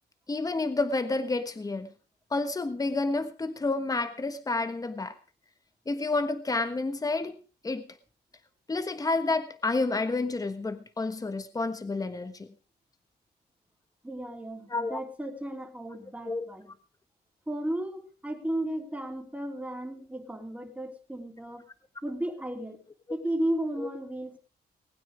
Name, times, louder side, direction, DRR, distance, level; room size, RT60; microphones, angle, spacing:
voice 1, 0.3-1.9 2.3-5.2 5.9-7.4 7.6-7.9 8.7-12.5 14.7-15.0 16.2-16.4 23.8-23.9, left 3 dB, 20° left, 10 dB, 1.4 m, -29 dB
voice 2, 14.0-16.7 17.5-21.6 22.0-22.8 23.1-24.4, right 1 dB, 10° right, 3 dB, 3.3 m, -34 dB
20.0 x 9.4 x 5.1 m, 0.37 s
cardioid pair, 105°, 17 cm